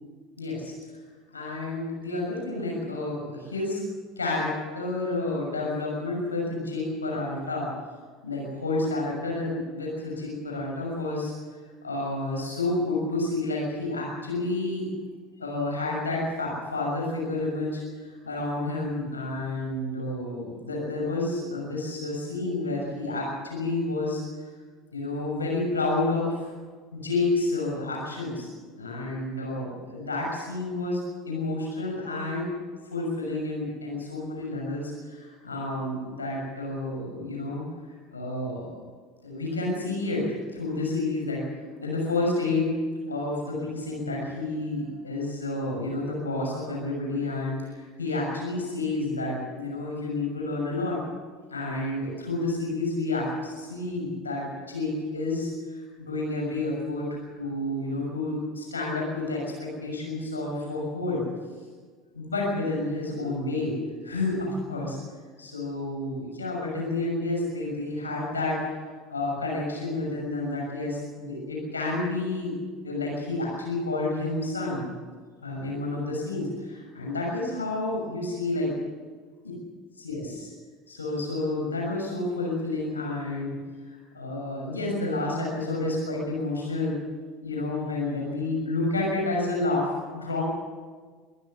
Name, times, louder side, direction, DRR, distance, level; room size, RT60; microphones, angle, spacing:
voice 1, 0.4-0.7 1.3-3.8 4.2-7.7 8.2-11.3 11.8-14.9 15.4-24.2 24.9-26.5 26.9-28.5 28.7-31.0 31.2-32.5 32.9-37.6 38.1-38.8 39.2-41.5 41.8-42.8 43.1-51.0 51.5-61.2 62.1-65.0 65.4-68.6 69.1-74.9 75.4-78.7 80.0-80.5 80.9-83.6 83.8-87.0 87.4-90.4, left 2 dB, 85° left, -1 dB, 6.4 m, -30 dB
24.5 x 15.0 x 7.3 m, 1.5 s
figure-of-eight pair, 70°, 0 cm